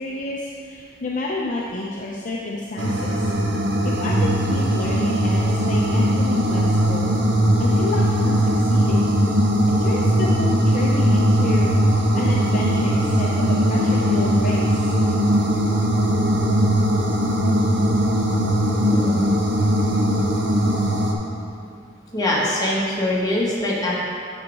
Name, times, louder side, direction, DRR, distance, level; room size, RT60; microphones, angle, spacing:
voice 1, 0.0-3.3 3.8-7.1 7.6-9.1 9.8-11.8 12.1-14.9, left 2 dB, 45° left, -3 dB, 0.6 m, -29 dB
sound 1, 2.8-21.1, equal, 65° right, 0.8 m, -19 dB
voice 2, 18.8-19.2 22.1-24.0, left 1 dB, 20° left, -5 dB, 1.4 m, -23 dB
9.7 x 5.2 x 3.5 m, 2.4 s
head